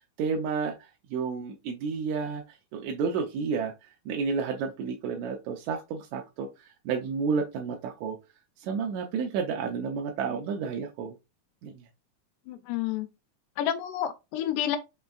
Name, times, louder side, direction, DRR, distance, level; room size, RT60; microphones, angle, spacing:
voice 1, 0.2-8.2 8.6-11.2 11.6-11.8, right 5 dB, 75° right, 1.8 m, -31 dB
voice 2, 12.5-13.1 13.6-14.8, left 11 dB, 90° left, 2.2 m, -29 dB
5.3 x 3.3 x 2.3 m
omnidirectional pair, 3.6 m